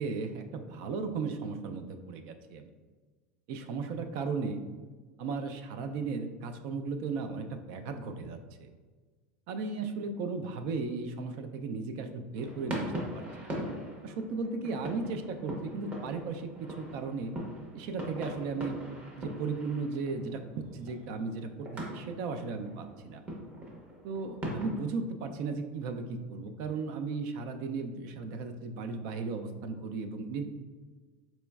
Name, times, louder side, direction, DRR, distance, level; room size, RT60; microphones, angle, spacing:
voice 1, 0.0-2.6 3.5-4.6 5.2-8.7 9.5-13.5 14.0-17.3 17.7-18.8 19.2-23.2 24.0-30.5, right 4 dB, 60° right, 8 dB, 0.4 m, -36 dB
sound 1, 12.4-24.9, right 1 dB, 30° right, 0.8 m, -41 dB
4.2 x 3.0 x 2.3 m, 1.4 s
supercardioid pair, 135°, 5 cm